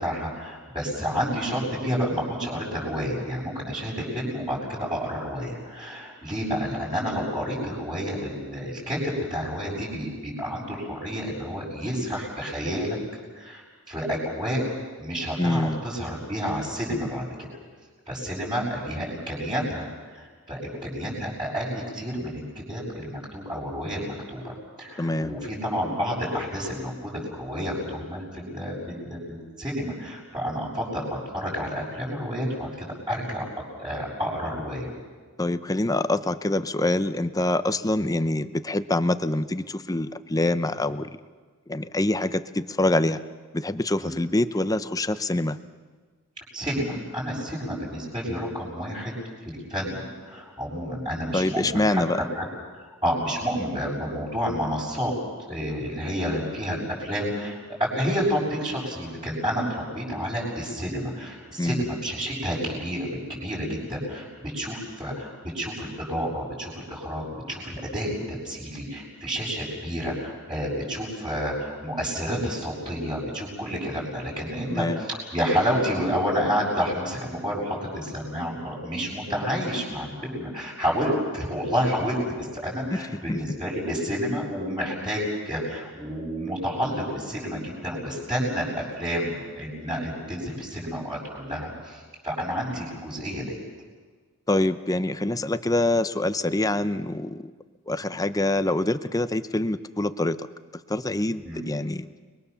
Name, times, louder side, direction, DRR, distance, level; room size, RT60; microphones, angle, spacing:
voice 1, 0.0-13.0 13.4-14.6 15.0-17.5 18.1-32.7 33.1-33.4 33.8-34.9 38.0-38.1 44.0-44.2 46.5-49.1 49.4-52.0 52.3-52.4 52.7-55.1 55.5-93.6 97.9-98.1 101.4-101.6, equal, 20° right, -8 dB, 7.1 m, -30 dB
voice 2, 15.4-15.8 25.0-25.3 35.4-41.2 41.7-43.2 43.5-45.6 51.3-52.2 61.6-61.8 74.7-75.0 82.9-83.0 83.3-83.4 94.5-97.5 97.9-100.5 100.9-102.1, left 1 dB, 15° left, 12 dB, 0.7 m, -25 dB
30.0 x 22.0 x 7.1 m, 1.5 s
head